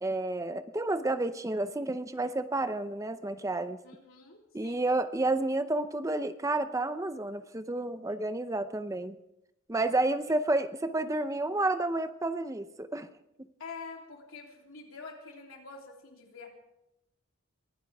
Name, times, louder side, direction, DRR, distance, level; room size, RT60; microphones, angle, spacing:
voice 1, 0.0-3.8 4.5-9.2 9.7-13.1, right 2 dB, 15° right, 11 dB, 0.6 m, -30 dB
voice 2, 3.8-4.8 9.9-10.1 13.6-16.5, left 4 dB, 75° left, 0 dB, 3.3 m, -46 dB
23.5 x 16.0 x 3.5 m, 0.85 s
head